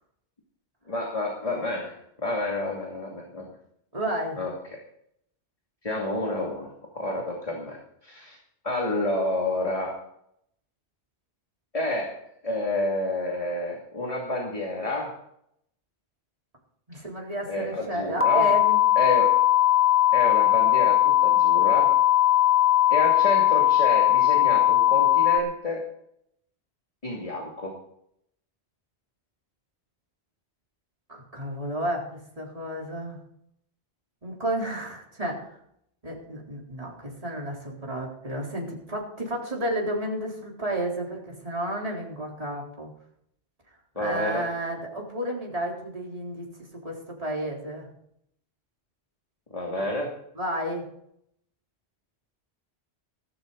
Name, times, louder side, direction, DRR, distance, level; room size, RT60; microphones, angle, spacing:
voice 1, 0.9-3.5 4.4-4.5 5.8-8.4 8.6-10.1 11.7-15.2 17.5-18.5 19.0-19.4 20.1-22.0 22.9-25.8 27.0-27.8 44.0-44.5 49.5-50.1, left 2 dB, 30° left, -1 dB, 2.7 m, -29 dB
voice 2, 3.9-4.4 16.9-18.8 31.1-33.2 34.2-35.6 36.0-42.9 44.0-46.5 46.8-47.9 50.4-50.8, right 1 dB, 35° right, -2 dB, 3.9 m, -31 dB
sound 1, 18.2-25.4, left 13 dB, 10° left, 1.2 m, -19 dB
15.5 x 14.0 x 4.0 m, 0.71 s
omnidirectional pair, 1.1 m